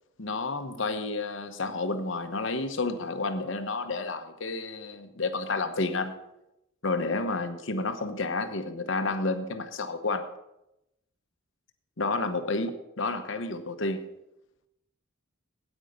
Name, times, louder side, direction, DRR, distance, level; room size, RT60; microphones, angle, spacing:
voice 1, 0.2-6.1 6.8-10.3 12.0-14.1, left 3 dB, 60° left, 8 dB, 1.0 m, -30 dB
9.1 x 9.0 x 6.6 m, 0.89 s
head